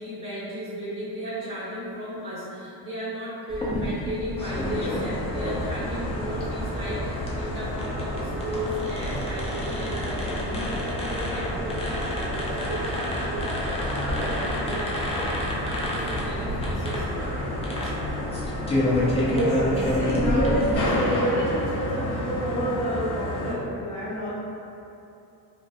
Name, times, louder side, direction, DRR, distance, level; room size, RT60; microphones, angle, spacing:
voice 1, 0.0-15.0 15.3-18.3, equal, 15° right, -13 dB, 1.2 m, -35 dB
sound 1, 3.5-20.8, left 1 dB, 15° left, 0.3 m, -30 dB
sound 2, 4.4-23.5, left 1 dB, 75° left, 0.9 m, -31 dB
voice 2, 19.2-24.3, right 1 dB, 45° left, -15 dB, 0.9 m, -27 dB
2.4 x 2.3 x 2.4 m, 2.7 s
cardioid pair, 110°, 40 cm